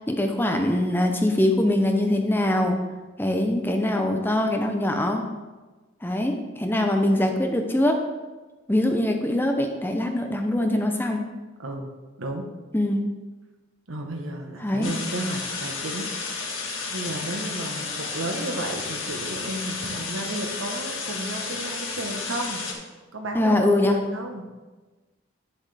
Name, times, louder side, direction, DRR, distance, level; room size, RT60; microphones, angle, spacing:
voice 1, 0.0-2.8 3.2-5.2 6.0-8.0 8.7-11.2 12.7-13.0 14.6-14.9 23.3-24.0, left 1 dB, 10° left, 3 dB, 0.6 m, -23 dB
voice 2, 12.2-12.5 13.9-16.5 16.9-22.6 23.1-23.6 23.8-24.5, right 1 dB, 85° right, 3 dB, 1.2 m, -33 dB
sound 1, 14.8-22.7, left 4 dB, 85° left, 1.6 m, -32 dB
9.7 x 7.3 x 3.4 m, 1.2 s
head